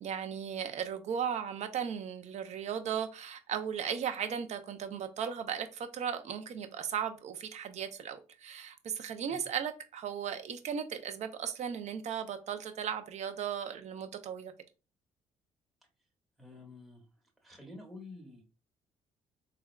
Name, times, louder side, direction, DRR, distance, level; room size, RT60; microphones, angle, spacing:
voice 1, 0.0-14.5, right 8 dB, 55° right, 0.5 m, -36 dB
voice 2, 16.4-17.1 17.4-18.4, left 2 dB, ahead, 1.1 m, -49 dB
3.5 x 2.2 x 2.2 m
cardioid pair, 85°, 14 cm